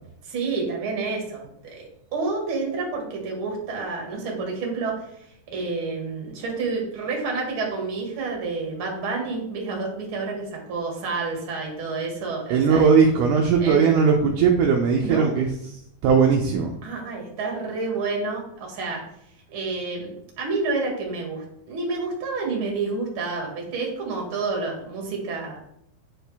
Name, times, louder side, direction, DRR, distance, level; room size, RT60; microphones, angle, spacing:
voice 1, 0.2-5.0 5.5-12.9 13.6-13.9 15.0-15.3 16.8-19.0 19.5-25.6, right 3 dB, 45° right, -1 dB, 2.1 m, -29 dB
voice 2, 12.5-15.6 16.0-16.7, right 6 dB, 80° right, 1 dB, 1.9 m, -18 dB
9.0 x 4.6 x 3.4 m, 0.73 s
omnidirectional pair, 4.3 m